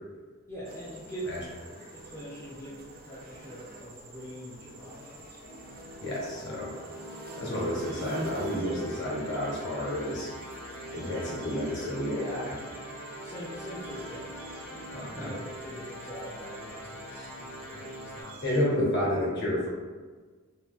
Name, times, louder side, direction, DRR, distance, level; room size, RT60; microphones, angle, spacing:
voice 1, 0.5-1.3 1.9-5.4 13.2-14.3 14.7-18.8, equal, 10° left, -8 dB, 0.4 m, -43 dB
sound 1, 0.6-18.6, right 2 dB, 45° right, 0.4 m, -46 dB
sound 2, 5.4-18.2, equal, 85° left, 0.6 m, -43 dB
voice 2, 6.0-6.7 7.4-10.3 10.9-12.6 14.9-15.3 18.4-19.7, left 1 dB, 55° left, -5 dB, 1.1 m, -30 dB
Bowed string instrument, 10.8-16.3, right 2 dB, 90° right, 0.6 m, -51 dB
2.8 x 2.2 x 3.5 m, 1.4 s
head